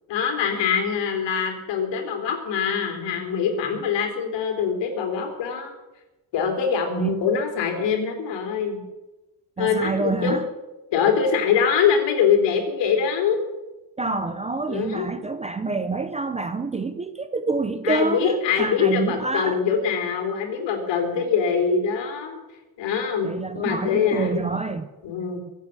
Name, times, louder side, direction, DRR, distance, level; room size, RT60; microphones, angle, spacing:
voice 1, 0.1-5.7 6.3-8.8 9.6-10.4 10.9-13.4 14.7-15.1 17.8-22.4 22.8-24.5 25.0-25.4, left 6 dB, 70° left, 3.7 m, -23 dB
voice 2, 9.6-10.5 14.0-19.6 23.2-24.9, right 3 dB, 15° right, 0.5 m, -27 dB
23.5 x 8.4 x 6.6 m
cardioid pair, 175°, 44 cm